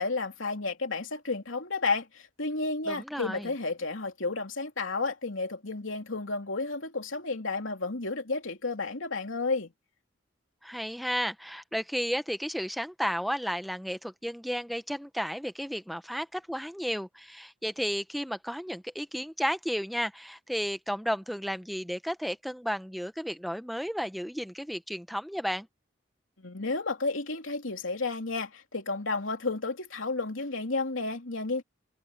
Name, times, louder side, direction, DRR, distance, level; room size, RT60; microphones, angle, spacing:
voice 1, 0.0-9.7 26.4-31.6, left 3 dB, 85° left, 2.9 m, -32 dB
voice 2, 2.9-3.5 10.6-25.7, equal, ahead, 0.7 m, -33 dB
head